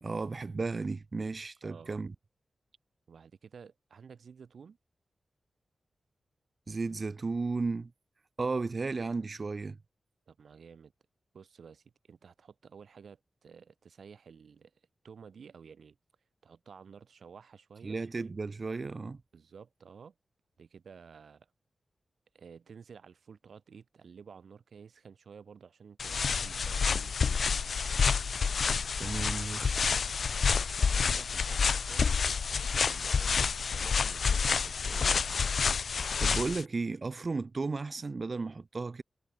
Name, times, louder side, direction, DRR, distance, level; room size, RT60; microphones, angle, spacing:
voice 1, 0.0-2.1 6.7-7.9 8.4-9.8 17.8-19.2 29.0-29.8 36.2-39.0, right 3 dB, 35° right, 0.4 m, -34 dB
voice 2, 1.6-2.0 3.1-4.8 10.3-10.9 11.3-14.7 15.0-16.0 16.4-18.0 19.3-20.1 20.6-21.5 22.3-27.4 30.8-35.5, right 6 dB, 70° right, 7.7 m, -52 dB
sound 1, 26.0-36.6, left 5 dB, 65° left, 0.5 m, -28 dB
wide cardioid pair, 140°, 0 cm